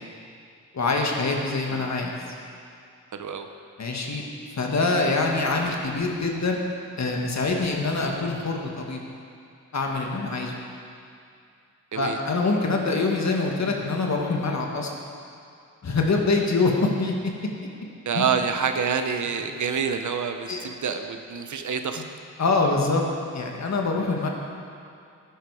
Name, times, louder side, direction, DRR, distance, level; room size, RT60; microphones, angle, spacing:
voice 1, 0.7-2.1 3.8-4.2 4.6-6.7 7.0-9.0 9.7-10.6 11.9-14.9 15.8-17.1 18.1-18.3 20.5-20.7 22.4-23.0 23.3-24.3, left 3 dB, 60° left, 0 dB, 1.9 m, -24 dB
voice 2, 3.1-3.5 11.9-12.2 18.1-22.0, right 6 dB, 65° right, 6 dB, 0.9 m, -27 dB
13.0 x 10.0 x 5.0 m, 2.5 s
cardioid pair, 55°, 32 cm